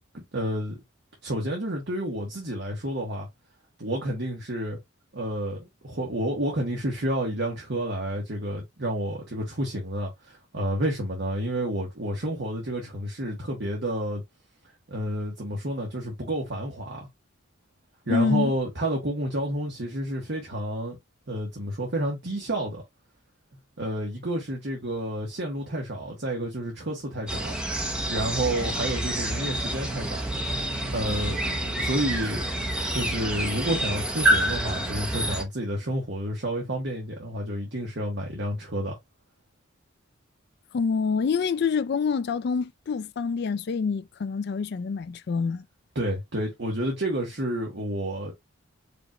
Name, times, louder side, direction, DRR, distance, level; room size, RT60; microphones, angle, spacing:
voice 1, 0.1-0.8 1.2-3.3 3.8-4.8 5.1-14.2 14.9-17.1 18.1-21.0 21.3-22.8 23.8-27.5 28.1-30.3 30.9-32.5 32.9-39.0 45.9-48.3, right 1 dB, 60° right, 1.2 m, -30 dB
voice 2, 18.1-18.5 40.7-45.6, left 5 dB, 55° left, 0.3 m, -26 dB
sound 1, 27.3-35.4, right 1 dB, 5° right, 0.8 m, -28 dB
5.0 x 2.5 x 3.0 m
head